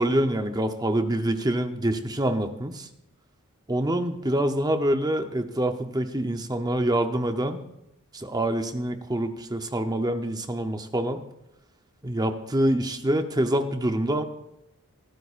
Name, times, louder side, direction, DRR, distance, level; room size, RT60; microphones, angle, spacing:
voice 1, 0.0-2.9 3.7-7.6 8.1-11.2 12.0-14.2, right 1 dB, 20° right, 7 dB, 0.8 m, -26 dB
22.0 x 13.0 x 2.5 m, 0.86 s
head